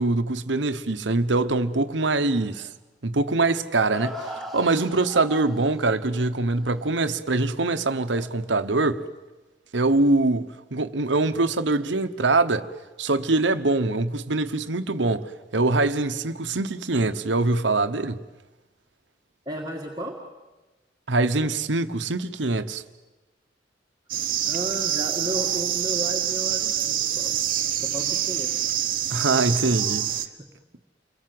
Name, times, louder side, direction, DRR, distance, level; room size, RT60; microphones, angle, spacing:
voice 1, 0.0-2.7 3.0-4.2 4.5-9.0 9.7-12.7 13.0-18.2 21.1-22.8 29.1-30.1, right 2 dB, 80° right, 1.1 m, -23 dB
sound 1, 2.0-2.5 3.1-3.2 3.9-6.0 8.1-8.3, left 1 dB, ahead, 1.8 m, -38 dB
voice 2, 19.5-20.2 24.4-27.4 27.8-28.7, equal, 20° right, 1.9 m, -33 dB
sound 2, 24.1-30.3, right 11 dB, 50° right, 1.2 m, -26 dB
29.0 x 22.5 x 7.8 m
head